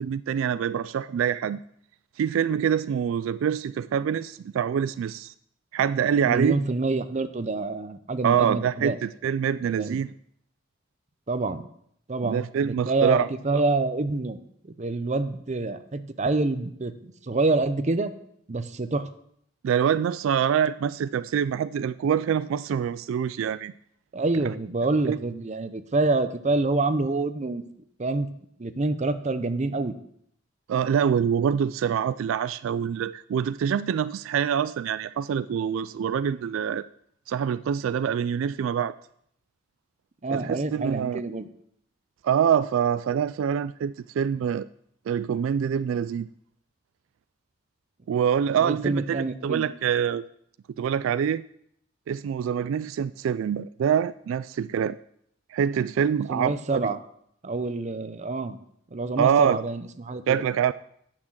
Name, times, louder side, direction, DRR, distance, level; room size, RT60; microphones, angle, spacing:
voice 1, 0.0-1.6 2.2-5.3 5.7-6.6 8.2-10.1 12.2-13.3 13.5-13.6 19.6-23.7 25.0-25.2 30.7-36.8 37.3-39.0 40.3-41.2 42.2-44.7 45.1-46.3 48.1-50.2 50.8-51.4 52.1-55.0 55.5-56.9 59.2-59.6 60.3-60.7, right 8 dB, 80° right, 16 dB, 0.3 m, -25 dB
voice 2, 6.2-9.0 9.7-10.0 11.3-11.6 12.1-14.4 14.8-18.1 18.5-19.1 24.1-27.6 28.0-28.3 28.6-29.9 40.2-41.5 48.6-49.6 56.3-57.0 57.4-58.6 58.9-60.4, right 3 dB, 35° right, 10 dB, 0.6 m, -27 dB
8.7 x 5.9 x 7.4 m, 0.70 s
head